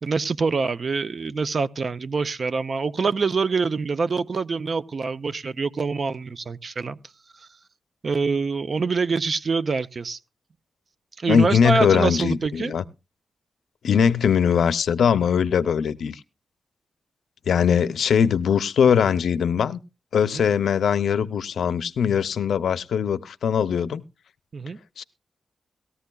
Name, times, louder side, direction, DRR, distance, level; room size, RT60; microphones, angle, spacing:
voice 1, 0.0-7.0 7.4-7.5 8.0-10.2 11.2-12.7 20.3-20.5 24.5-24.8, right 4 dB, 45° right, 0.5 m, -25 dB
voice 2, 11.3-12.8 13.8-16.2 17.5-19.8 20.1-24.0 25.0-25.1, left 7 dB, 80° left, 0.5 m, -21 dB
18.5 x 14.0 x 2.3 m
wide cardioid pair, 140°, 0 cm